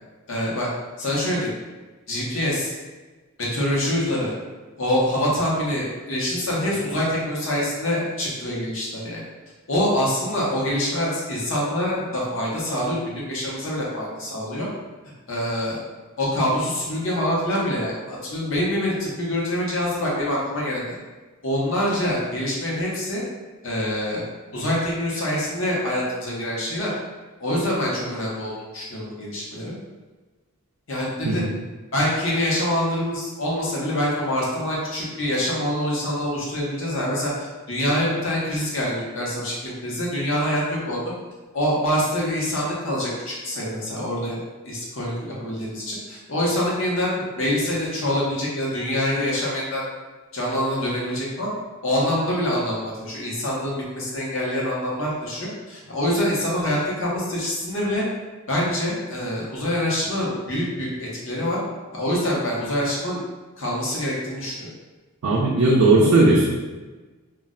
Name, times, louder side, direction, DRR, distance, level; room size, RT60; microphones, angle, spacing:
voice 1, 0.3-0.7 1.0-1.5 2.1-2.8 3.4-4.3 4.8-9.2 9.7-14.7 15.3-15.8 16.2-21.0 21.4-23.2 23.6-24.2 24.5-26.9 27.4-29.7 30.9-31.4 31.9-41.0 41.5-49.8 50.3-51.5 51.8-58.0 58.5-61.6 61.9-63.2 63.6-64.7, left 1 dB, 65° left, -5 dB, 0.8 m, -25 dB
voice 2, 65.2-66.5, right 2 dB, 85° right, -3 dB, 0.4 m, -17 dB
2.4 x 2.1 x 3.7 m, 1.2 s
head